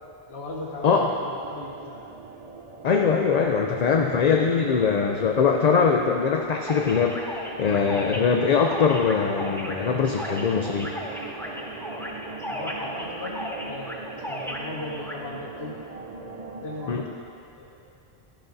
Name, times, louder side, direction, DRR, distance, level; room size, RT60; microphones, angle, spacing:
voice 1, 0.3-2.0 12.5-15.8 16.6-17.1 17.6-17.7, left 1 dB, 75° left, -5 dB, 2.0 m, -37 dB
sound 1, 1.4-16.9, right 3 dB, 40° right, 0.6 m, -41 dB
voice 2, 2.8-10.9 16.9-17.0, left 5 dB, 50° left, 2 dB, 0.5 m, -22 dB
sound 2, 6.7-15.2, equal, 5° left, 0.7 m, -36 dB
12.5 x 11.0 x 2.7 m, 2.5 s
omnidirectional pair, 1.1 m